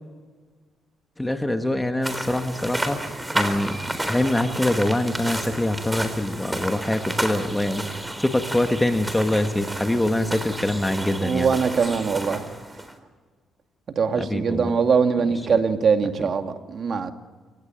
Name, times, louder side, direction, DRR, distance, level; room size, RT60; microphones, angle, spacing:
voice 1, 1.2-3.0 3.3-11.5 14.2-14.7, left 1 dB, 10° left, 1.6 m, -24 dB
sound 1, 2.0-12.9, right 1 dB, 10° right, 3.9 m, -31 dB
voice 2, 11.2-12.5 14.0-17.1, right 5 dB, 50° right, 2.4 m, -22 dB
29.5 x 17.5 x 9.3 m
cardioid pair, 90°, 0 cm